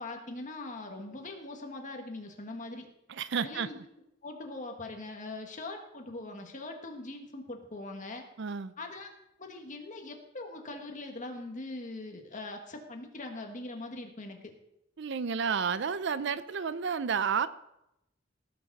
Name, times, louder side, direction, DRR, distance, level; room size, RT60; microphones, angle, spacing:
voice 1, 0.0-2.9 3.4-3.8 4.2-8.2 8.8-9.1 9.4-14.5, left 2 dB, 40° left, 3 dB, 1.7 m, -41 dB
voice 2, 3.2-3.7 8.4-8.7 15.0-17.5, right 6 dB, 65° right, 14 dB, 0.5 m, -31 dB
17.5 x 6.9 x 4.1 m, 0.84 s
head